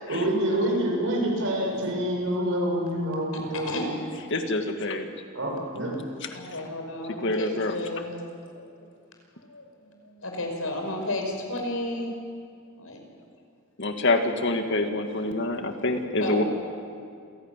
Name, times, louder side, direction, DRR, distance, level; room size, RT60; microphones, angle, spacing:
voice 1, 0.1-3.8 5.3-5.9, right 1 dB, 65° right, 0 dB, 7.2 m, -27 dB
voice 2, 4.3-5.1 7.2-7.7 13.8-16.4, left 2 dB, 60° left, 5 dB, 2.0 m, -26 dB
voice 3, 6.3-8.2 8.4-8.9 9.4-12.1 12.8-13.0 15.5-15.6 16.2-16.4, left 1 dB, 80° left, 2 dB, 5.6 m, -33 dB
27.5 x 17.0 x 9.1 m, 2.3 s
head